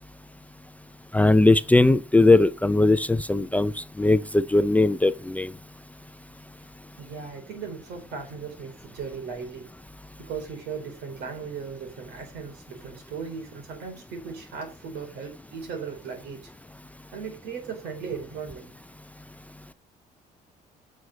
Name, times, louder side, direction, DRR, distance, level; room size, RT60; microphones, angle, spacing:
voice 1, 1.1-5.5, left 2 dB, 10° left, 0.4 m, -19 dB
voice 2, 7.0-9.7 10.2-16.5 17.1-18.7, right 6 dB, 80° right, 4.3 m, -37 dB
9.5 x 6.4 x 6.4 m
cardioid pair, 110°, 17 cm